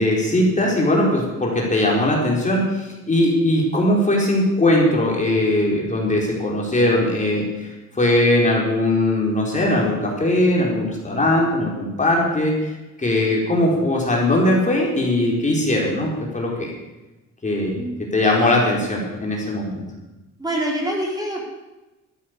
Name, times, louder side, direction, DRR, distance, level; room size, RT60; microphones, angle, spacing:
voice 1, 0.0-12.7 13.0-16.7 17.4-19.8, left 1 dB, 25° left, -2 dB, 4.8 m, -20 dB
voice 2, 20.4-21.4, right 1 dB, 15° right, -2 dB, 4.6 m, -25 dB
13.5 x 11.0 x 6.7 m, 1.1 s
cardioid pair, 90°, 30 cm